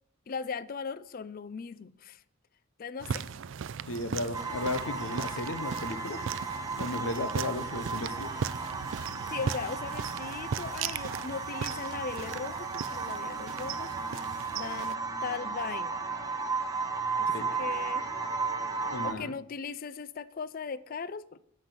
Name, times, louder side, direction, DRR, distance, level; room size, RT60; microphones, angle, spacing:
voice 1, 0.3-2.2 2.8-3.3 5.2-5.3 9.3-13.9 14.2-16.0 17.2-18.1 19.0-21.4, left 5 dB, 45° left, 0.4 m, -38 dB
sound 1, 3.0-15.0, right 7 dB, 65° right, 0.4 m, -38 dB
voice 2, 3.9-6.2 6.8-8.3 17.3-17.5 18.9-19.3, left 2 dB, 70° left, 0.8 m, -34 dB
sound 2, 4.3-19.1, right 4 dB, 15° right, 1.0 m, -35 dB
9.9 x 6.4 x 8.2 m
head